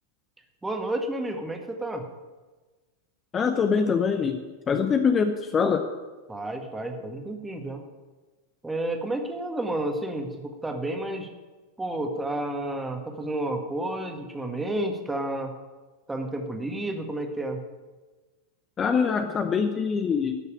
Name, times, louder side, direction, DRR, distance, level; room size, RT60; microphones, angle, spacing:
voice 1, 0.6-2.0 6.3-7.8 8.6-11.3 11.8-15.5 16.1-17.6, right 1 dB, 10° right, 5 dB, 1.6 m, -31 dB
voice 2, 3.3-4.4 4.7-5.9 18.8-20.4, left 6 dB, 25° left, 6 dB, 0.8 m, -24 dB
12.5 x 6.6 x 8.7 m, 1.3 s
figure-of-eight pair, 90°, 0 cm